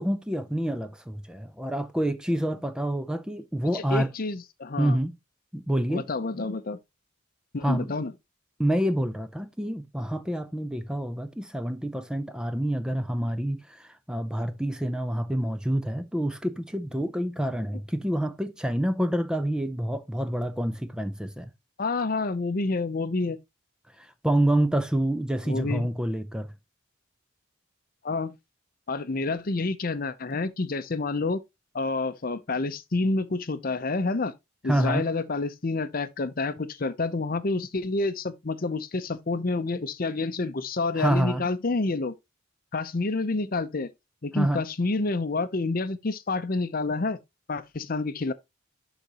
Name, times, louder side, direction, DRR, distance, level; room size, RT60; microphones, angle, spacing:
voice 1, 0.0-4.1 4.8-5.1 5.5-6.1 7.6-7.9 8.6-21.5 24.0-26.5 34.6-35.0 41.0-41.4 44.3-44.6, right 1 dB, 5° right, 0.5 m, -27 dB
voice 2, 3.7-5.0 5.9-6.8 7.5-8.1 21.8-23.4 25.5-25.9 28.0-28.3 28.9-31.4 31.7-34.3 34.6-42.1 42.7-43.9 44.2-47.2 47.5-48.3, left 3 dB, 45° left, 0.6 m, -28 dB
11.5 x 4.0 x 2.9 m
head